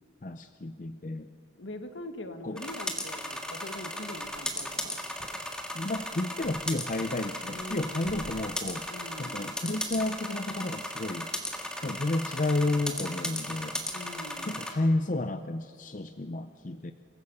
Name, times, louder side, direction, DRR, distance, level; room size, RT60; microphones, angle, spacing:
voice 1, 0.2-1.3 2.4-2.6 5.7-8.9 9.2-11.3 11.8-13.8 14.4-16.9, left 2 dB, 40° left, 9 dB, 0.6 m, -31 dB
voice 2, 1.5-5.0 7.5-8.4 8.9-9.5 13.9-14.7, left 1 dB, 75° left, 8 dB, 1.7 m, -43 dB
sound 1, 2.6-14.7, left 1 dB, 5° left, 1.8 m, -36 dB
sound 2, 4.1-5.3 5.7-6.9 7.2-8.7 9.1-9.3 9.6-10.1 10.4-10.5 10.9-11.5 11.8-12.2 12.5-12.8, equal, 35° right, 6.0 m, -53 dB
28.5 x 15.0 x 7.2 m, 2.6 s
head